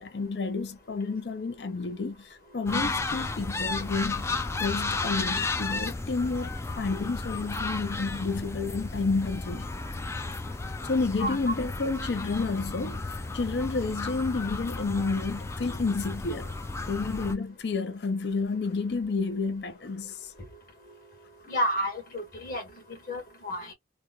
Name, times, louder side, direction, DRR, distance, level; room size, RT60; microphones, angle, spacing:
voice 1, 0.0-4.3 4.6-6.5 6.8-9.7 10.8-16.5 16.9-20.3, left 4 dB, 70° left, 0.5 m, -30 dB
sound 1, 2.7-17.4, left 3 dB, 15° left, 0.3 m, -33 dB
voice 2, 21.5-22.6 22.9-23.7, equal, 55° left, 1.7 m, -31 dB
3.4 x 2.2 x 2.3 m
head